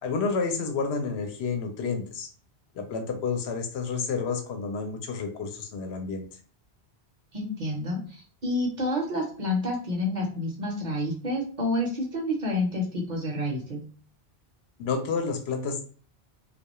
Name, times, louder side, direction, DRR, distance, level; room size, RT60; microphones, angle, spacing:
voice 1, 0.0-2.3 2.7-6.3 14.8-15.8, left 5 dB, 75° left, 5 dB, 0.8 m, -30 dB
voice 2, 7.3-13.8, left 1 dB, 50° right, 1 dB, 0.7 m, -29 dB
2.2 x 2.2 x 2.9 m, 0.41 s
omnidirectional pair, 1.1 m